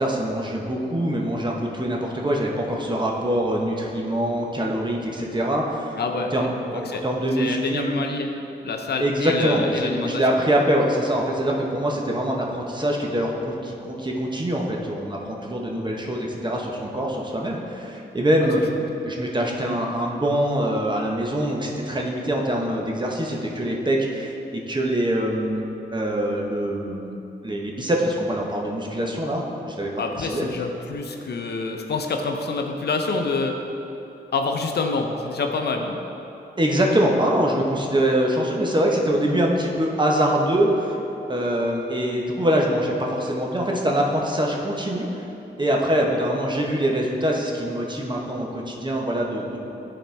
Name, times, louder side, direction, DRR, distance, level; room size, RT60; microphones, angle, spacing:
voice 1, 0.0-5.9 6.3-7.9 9.0-18.6 19.0-25.7 25.9-29.9 30.2-30.5 36.6-41.0 41.3-45.2 45.6-49.6, right 1 dB, 25° right, -1 dB, 1.1 m, -24 dB
voice 2, 6.0-7.0 7.3-8.3 8.6-10.4 30.0-33.6 34.3-36.0, left 3 dB, 65° left, 3 dB, 0.6 m, -27 dB
10.0 x 4.3 x 3.4 m, 2.9 s
cardioid pair, 55°, 18 cm